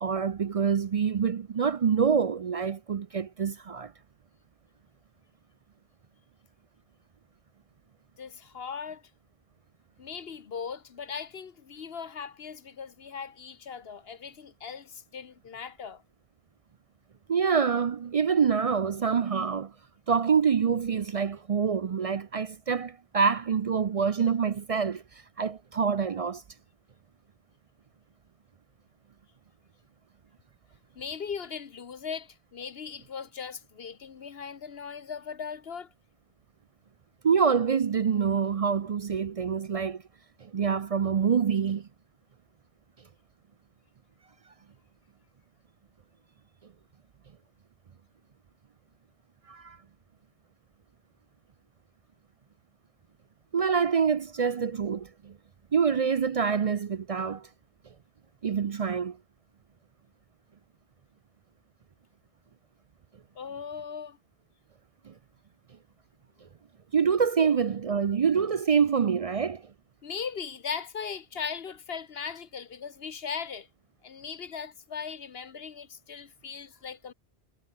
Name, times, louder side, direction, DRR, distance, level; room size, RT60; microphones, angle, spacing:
voice 1, 0.0-3.9 17.3-19.7 20.1-25.0 25.4-26.4 37.2-40.0 40.4-41.9 49.5-49.8 53.5-55.3 55.7-57.5 58.4-59.2 65.1-65.2 66.9-69.6, right 6 dB, 50° right, 0.4 m, -26 dB
voice 2, 8.2-9.0 10.0-16.0 30.9-35.9 63.3-64.2 67.4-67.5 70.0-73.7 74.0-77.1, left 6 dB, 65° left, 1.2 m, -38 dB
omnidirectional pair, 1.1 m